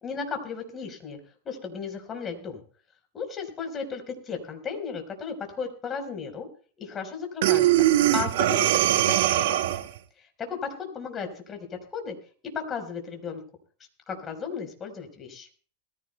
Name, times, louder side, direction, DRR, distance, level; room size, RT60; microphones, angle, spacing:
voice 1, 0.0-1.2 1.4-2.6 3.1-6.5 6.8-7.8 8.1-9.7 10.2-12.1 12.4-13.4 14.1-15.5, left 6 dB, 25° left, 4 dB, 4.2 m, -35 dB
Breathing, 7.4-10.0, right 13 dB, 65° right, 1.0 m, -21 dB
20.5 x 15.0 x 2.2 m, 0.42 s
hypercardioid pair, 100°, 0 cm